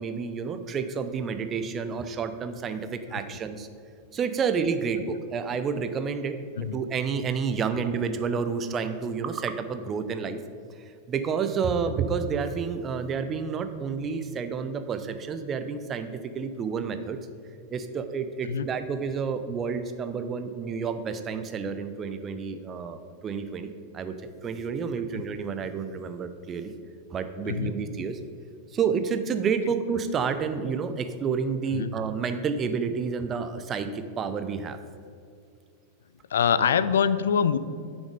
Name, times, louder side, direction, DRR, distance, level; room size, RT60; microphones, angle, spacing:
voice 1, 0.0-3.7 4.1-6.4 6.7-10.4 11.1-17.2 17.7-24.1 24.4-26.7 27.1-28.2 28.7-34.8, right 6 dB, 25° right, 9 dB, 0.7 m, -30 dB
voice 2, 36.3-37.6, left 7 dB, 65° left, 14 dB, 0.4 m, -24 dB
10.0 x 6.2 x 5.2 m, 2.4 s
figure-of-eight pair, 90°, 0 cm